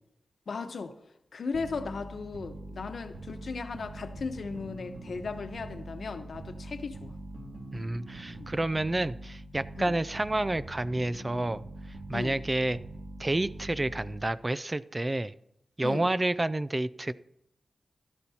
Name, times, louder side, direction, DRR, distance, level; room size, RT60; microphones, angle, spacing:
voice 1, 0.5-0.9 1.3-7.1 8.3-8.5 9.8-9.9 12.1-12.4 15.8-16.1, left 4 dB, 75° left, 1.0 m, -36 dB
sound 1, 1.5-14.4, right 2 dB, 65° right, 2.1 m, -43 dB
voice 2, 7.7-11.6 12.1-12.8 13.2-15.3 15.8-17.1, right 2 dB, 25° right, 0.4 m, -29 dB
16.0 x 11.5 x 2.9 m
wide cardioid pair, 80°, 0 cm